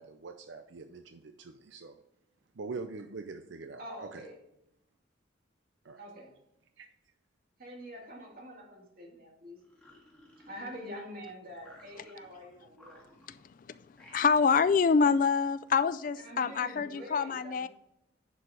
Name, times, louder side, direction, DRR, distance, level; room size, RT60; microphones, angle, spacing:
voice 1, 0.0-2.0 2.6-4.3 5.8-6.0 6.8-6.9, right 4 dB, 70° right, 7 dB, 0.5 m, -43 dB
voice 2, 3.8-4.4 6.0-6.3 7.6-9.6 10.5-13.0 16.2-17.7, equal, 45° right, -1 dB, 2.4 m, -45 dB
sound 1, 9.6-11.1 11.6-12.4 12.7-13.5 13.9-14.8, equal, 5° left, 1.8 m, -58 dB
voice 3, 14.1-17.7, left 5 dB, 45° left, 14 dB, 0.3 m, -26 dB
10.5 x 4.7 x 5.0 m, 0.81 s
head